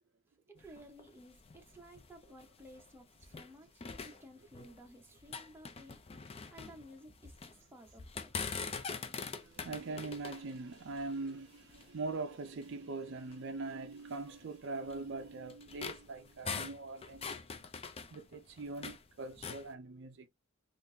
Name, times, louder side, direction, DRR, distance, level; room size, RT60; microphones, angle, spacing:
voice 1, 0.5-8.3, equal, 10° right, 0.7 m, -56 dB
sound 1, 0.6-3.5 3.8-4.9 5.2-7.6 8.0-12.0 12.6-12.7 13.2-13.3 14.1-19.0 19.3-19.7, left 5 dB, 25° left, 0.4 m, -44 dB
voice 2, 8.5-9.1 9.4-17.3 18.1-20.3, right 3 dB, 55° right, 0.4 m, -42 dB
3.7 x 2.5 x 2.7 m
head